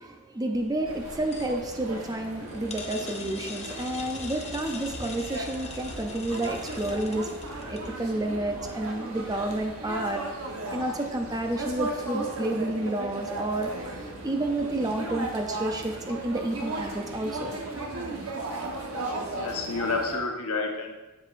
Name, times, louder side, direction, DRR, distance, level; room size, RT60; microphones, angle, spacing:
voice 1, 0.0-7.3 7.7-10.2 10.7-17.6, right 1 dB, 15° right, 4 dB, 0.5 m, -30 dB
sound 1, 0.5-8.0, left 5 dB, 30° left, 0.7 m, -43 dB
sound 2, 0.8-20.2, right 2 dB, 70° right, 1.1 m, -36 dB
voice 2, 19.3-20.9, left 3 dB, 80° left, 2 dB, 1.1 m, -29 dB
7.6 x 7.5 x 2.5 m, 1.1 s
head